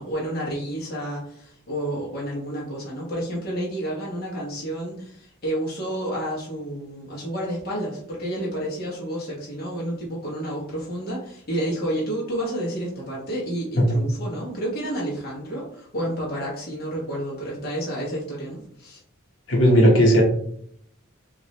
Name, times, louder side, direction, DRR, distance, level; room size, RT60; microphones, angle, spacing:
voice 1, 0.0-19.0, right 1 dB, 50° left, -5 dB, 1.1 m, -30 dB
voice 2, 19.5-20.2, equal, 65° left, -2 dB, 1.3 m, -16 dB
4.8 x 2.6 x 3.1 m, 0.65 s
head